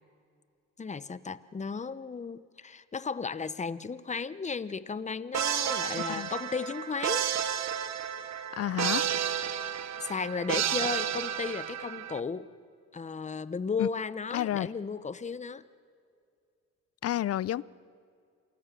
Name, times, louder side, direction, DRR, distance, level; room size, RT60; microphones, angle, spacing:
voice 1, 0.8-7.3 10.0-12.5 12.9-15.6, left 5 dB, 25° left, 0.9 m, -35 dB
sound 1, 5.3-12.2, right 9 dB, 65° right, 1.1 m, -31 dB
voice 2, 8.6-9.1 13.8-13.9 14.3-14.7 17.0-17.6, left 12 dB, 55° left, 0.6 m, -30 dB
28.0 x 20.0 x 7.6 m
cardioid pair, 90°, 30 cm